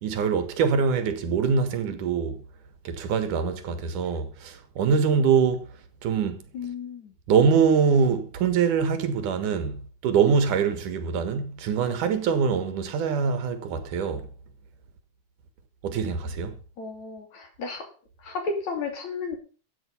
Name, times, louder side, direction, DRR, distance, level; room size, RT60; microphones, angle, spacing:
voice 1, 0.0-2.4 2.8-5.8 6.0-6.4 7.3-14.3 15.8-16.5, right 6 dB, 85° right, 3.2 m, -24 dB
voice 2, 6.5-7.1 16.8-17.9 18.2-19.4, left 4 dB, 65° left, 4.3 m, -33 dB
13.5 x 8.7 x 5.5 m
omnidirectional pair, 3.5 m